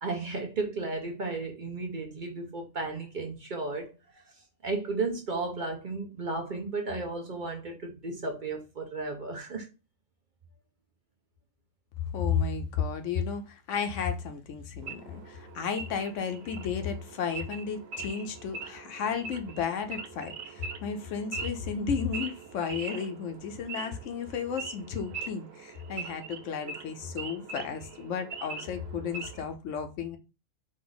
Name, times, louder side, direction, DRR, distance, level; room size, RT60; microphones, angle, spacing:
voice 1, 0.0-9.7, right 3 dB, 45° right, 0.7 m, -34 dB
voice 2, 12.1-30.2, left 6 dB, 75° left, 1.0 m, -33 dB
Wild animals / Idling, 14.8-29.5, right 5 dB, 80° right, 1.0 m, -42 dB
4.2 x 2.5 x 3.8 m
omnidirectional pair, 1.3 m